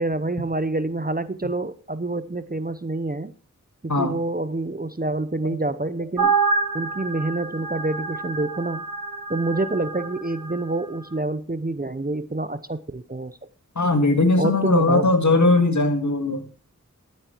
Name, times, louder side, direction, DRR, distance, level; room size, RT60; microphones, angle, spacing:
voice 1, 0.0-3.3 3.8-6.3 6.7-8.8 9.3-13.5 14.4-15.1, right 2 dB, 30° right, 14 dB, 0.8 m, -27 dB
sound 1, 6.2-10.6, right 4 dB, 90° right, 1.6 m, -27 dB
voice 2, 13.8-16.4, left 2 dB, 60° left, 7 dB, 1.9 m, -19 dB
12.5 x 8.8 x 4.5 m, 0.39 s
wide cardioid pair, 40°, 32 cm